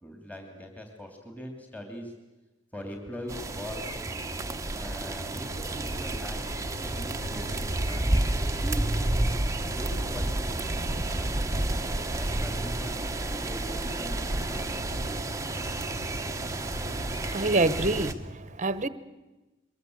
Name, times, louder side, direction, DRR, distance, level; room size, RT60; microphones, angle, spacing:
voice 1, 0.0-2.1 2.7-4.0 4.8-9.0 9.4-10.5 11.1-13.0 13.4-15.5, equal, 10° left, 3 dB, 3.1 m, -42 dB
sound 1, 3.3-18.1, right 2 dB, 15° right, 1.0 m, -31 dB
sound 2, 4.1-14.4, right 1 dB, 35° left, 5.7 m, -41 dB
sound 3, 6.5-10.4 14.3-18.2, equal, 60° left, 7.7 m, -40 dB
voice 2, 16.8-18.9, right 2 dB, 35° right, 14 dB, 1.1 m, -27 dB
23.5 x 22.0 x 8.1 m, 1.1 s
head